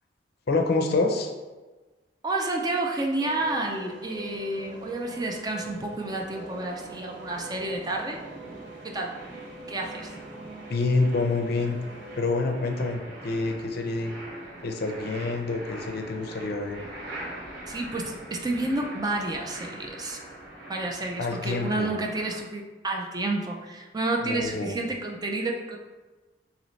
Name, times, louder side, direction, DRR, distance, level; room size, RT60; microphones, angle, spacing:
voice 1, 0.5-1.3 10.7-11.8 12.2-14.1 14.6-16.8 21.2-21.9 24.2-24.8, left 3 dB, 60° left, 4 dB, 0.5 m, -27 dB
voice 2, 2.2-8.2 8.8-9.1 9.7-10.1 17.7-20.2 20.7-25.8, right 2 dB, 20° right, 1 dB, 0.4 m, -30 dB
sound 1, 3.2-12.2, right 2 dB, 75° right, 0.6 m, -45 dB
sound 2, 4.0-22.4, right 1 dB, 60° right, 1.4 m, -43 dB
3.9 x 2.9 x 3.1 m, 1.2 s
head